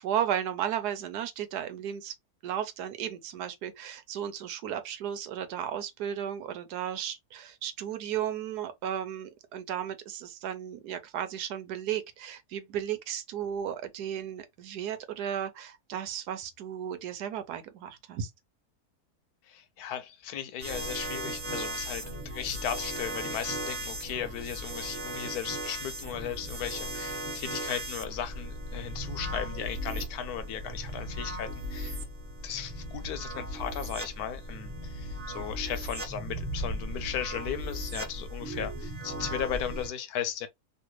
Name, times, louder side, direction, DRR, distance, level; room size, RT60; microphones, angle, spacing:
voice 1, 0.0-2.1 2.4-18.3, right 9 dB, 85° right, 1.2 m, -34 dB
voice 2, 19.5-32.0 32.4-40.5, left 9 dB, 80° left, 1.1 m, -36 dB
sound 1, 20.6-39.9, right 1 dB, 20° right, 1.3 m, -37 dB
3.2 x 2.6 x 3.0 m
omnidirectional pair, 1.7 m